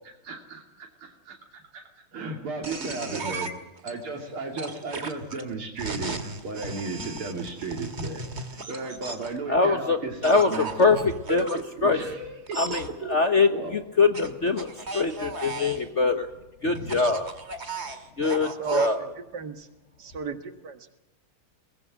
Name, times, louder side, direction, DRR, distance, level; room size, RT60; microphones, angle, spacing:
voice 1, 0.2-1.8 2.1-3.5 3.8-11.0 11.5-12.6 13.0-13.2 13.5-13.7 16.6-17.0, right 3 dB, 85° right, 1 dB, 3.7 m, -35 dB
sound 1, 2.6-3.9 4.6-9.4 10.2-11.6 12.5-12.9 14.1-15.9 16.8-18.9, right 3 dB, 30° right, 2.2 m, -36 dB
voice 2, 9.5-10.0 10.2-11.0 11.3-12.0 12.6-16.3 16.6-17.3 18.2-19.1, left 4 dB, 40° left, 7 dB, 1.3 m, -23 dB
voice 3, 18.6-19.7 20.0-21.0, right 5 dB, 55° right, 8 dB, 2.3 m, -34 dB
23.0 x 20.0 x 7.6 m, 0.97 s
omnidirectional pair, 2.3 m